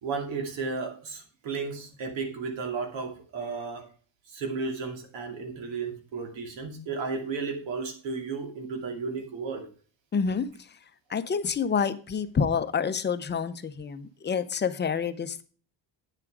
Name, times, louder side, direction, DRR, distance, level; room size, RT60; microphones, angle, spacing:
voice 1, 0.0-3.9 4.3-9.7, right 4 dB, 80° right, 4 dB, 2.6 m, -34 dB
voice 2, 10.1-10.5 11.1-15.4, left 6 dB, 25° left, 11 dB, 0.6 m, -28 dB
9.1 x 7.3 x 4.7 m, 0.40 s
cardioid pair, 160°, 44 cm